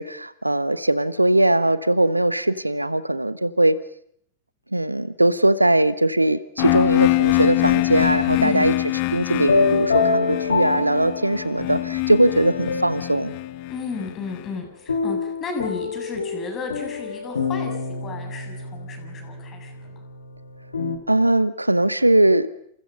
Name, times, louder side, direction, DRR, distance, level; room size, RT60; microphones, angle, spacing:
voice 1, 0.0-3.8 4.7-8.7 9.1-13.3 21.1-22.5, right 1 dB, 85° right, 17 dB, 1.1 m, -20 dB
sound 1, 6.6-14.4, left 20 dB, 45° left, 1.5 m, -24 dB
voice 2, 8.4-8.7 13.7-20.0, left 4 dB, 25° left, 4 dB, 7.8 m, -33 dB
sound 2, 9.4-11.8 12.3-13.3 14.9-21.0, left 4 dB, 75° left, 2.7 m, -26 dB
28.5 x 28.5 x 5.5 m, 0.67 s
figure-of-eight pair, 90°, 0 cm